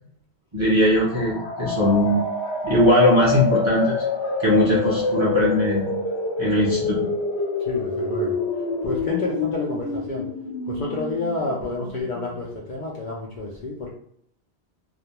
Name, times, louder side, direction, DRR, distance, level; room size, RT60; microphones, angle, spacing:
voice 1, 0.5-2.2 2.6-4.0 4.4-5.9 6.4-7.1, equal, 30° right, -6 dB, 0.6 m, -20 dB
spaceship power down, 0.8-12.5, left 4 dB, 80° left, 1.0 m, -27 dB
voice 2, 7.7-8.4 8.8-10.3 10.7-13.9, left 2 dB, 55° left, -3 dB, 0.6 m, -29 dB
2.4 x 2.1 x 2.9 m, 0.65 s
omnidirectional pair, 1.1 m